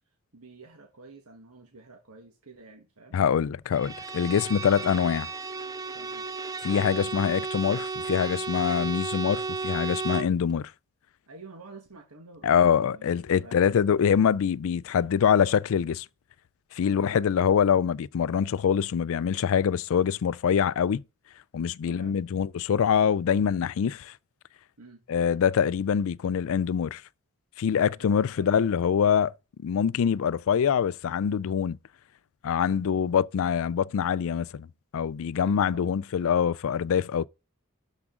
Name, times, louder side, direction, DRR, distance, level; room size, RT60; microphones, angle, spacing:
voice 1, 0.3-3.2 5.9-6.3 11.3-13.7 16.9-17.2 21.8-22.2 24.8-25.0 28.0-28.5 32.6-32.9 35.4-36.0, right 3 dB, 80° right, 1.5 m, -49 dB
voice 2, 3.1-5.3 6.6-10.7 12.4-16.1 16.7-21.0 21.5-24.1 25.1-27.0 27.6-29.3 29.6-31.8 32.4-34.7 34.9-37.3, left 7 dB, 65° left, 0.4 m, -24 dB
Bowed string instrument, 3.7-10.4, right 4 dB, 15° right, 0.4 m, -34 dB
12.0 x 4.8 x 3.7 m
head